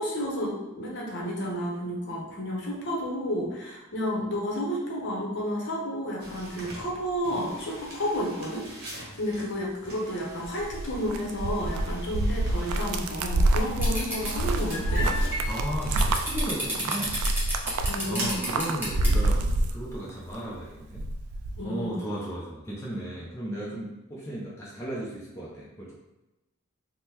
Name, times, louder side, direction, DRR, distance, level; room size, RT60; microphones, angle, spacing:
voice 1, 0.0-15.1 17.9-18.7 21.6-22.2, equal, 55° left, -3 dB, 0.8 m, -31 dB
sound 1, 6.2-19.4, right 1 dB, 45° right, 0.9 m, -43 dB
sound 2, 10.4-20.4 20.7-21.6, right 2 dB, 80° right, 0.3 m, -27 dB
sound 3, 13.8-14.3 14.7-19.1, equal, 10° right, 0.8 m, -31 dB
voice 2, 15.5-17.2 18.0-21.1 21.6-25.9, right 1 dB, 15° left, -6 dB, 0.5 m, -35 dB
3.6 x 2.1 x 2.9 m, 1.0 s
head